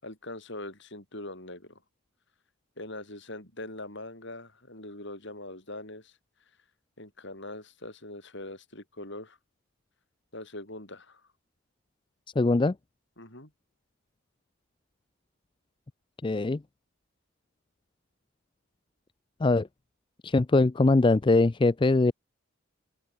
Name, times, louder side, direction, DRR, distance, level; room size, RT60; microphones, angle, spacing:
voice 1, 0.0-1.8 2.8-6.2 7.0-9.4 10.3-11.2 13.2-13.5, left 1 dB, 55° left, 7.0 m, -42 dB
voice 2, 12.4-12.8 16.2-16.6 19.4-19.7 20.2-22.1, left 2 dB, 20° left, 0.4 m, -22 dB
open air
head